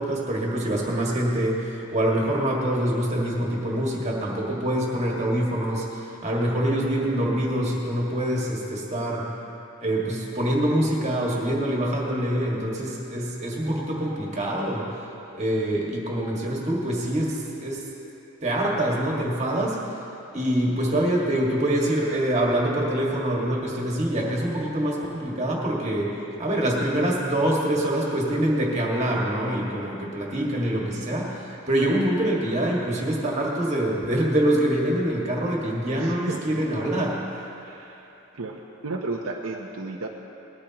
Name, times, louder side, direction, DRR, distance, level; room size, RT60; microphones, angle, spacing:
voice 1, 0.0-9.4 9.8-14.9 15.3-17.8 18.4-19.8 20.3-26.1 26.4-37.5, right 1 dB, 30° right, -3 dB, 1.8 m, -25 dB
voice 2, 36.0-36.4 37.6-38.1 38.3-40.1, right 3 dB, 85° right, 0 dB, 0.8 m, -33 dB
20.0 x 13.5 x 2.9 m, 3.0 s
head